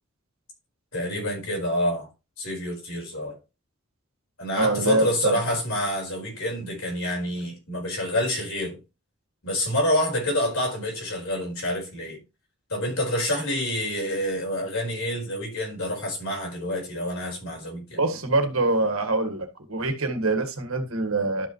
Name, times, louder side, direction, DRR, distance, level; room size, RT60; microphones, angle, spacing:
voice 1, 0.9-2.1 2.4-3.4 4.4-8.8 9.4-12.2 12.7-18.0, left 1 dB, 75° left, 4.4 m, -27 dB
voice 2, 4.5-5.4 18.0-21.5, right 2 dB, 80° right, 1.5 m, -24 dB
12.0 x 5.3 x 3.1 m
head